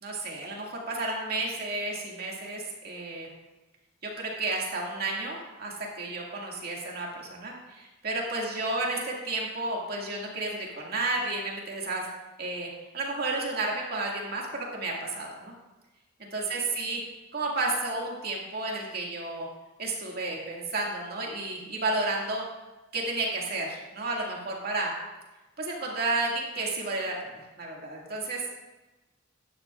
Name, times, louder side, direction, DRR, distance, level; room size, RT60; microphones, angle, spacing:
voice 1, 0.0-3.3 4.0-12.1 12.4-15.5 16.2-17.0 17.3-19.5 19.8-22.5 22.9-25.0 25.6-28.4, right 2 dB, 50° right, -2 dB, 2.1 m, -32 dB
13.5 x 10.5 x 2.4 m, 1.1 s
head